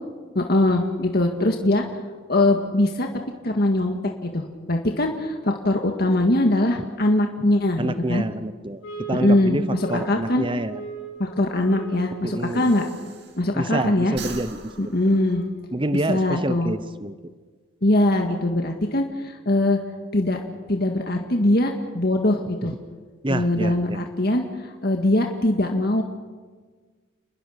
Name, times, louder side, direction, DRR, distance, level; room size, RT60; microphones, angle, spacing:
voice 1, 0.4-1.9 2.3-3.1 3.4-4.0 4.2-8.2 9.2-9.6 10.1-10.4 11.2-12.9 13.4-14.1 14.8-15.4 16.1-16.7 17.8-19.8 20.1-20.4 20.7-22.7 23.3-26.0, left 1 dB, 50° left, 3 dB, 1.8 m, -21 dB
voice 2, 7.8-10.8 12.2-12.8 13.5-14.7 15.7-17.3 22.6-22.7 23.2-24.0, right 1 dB, 25° right, 13 dB, 0.8 m, -28 dB
sound 1, 8.8-13.2, right 5 dB, 85° left, 4.2 m, -39 dB
Breathing, 11.0-13.7 14.0-16.0, right 5 dB, 55° right, 2.8 m, -42 dB
30.0 x 21.0 x 6.6 m, 1.4 s
head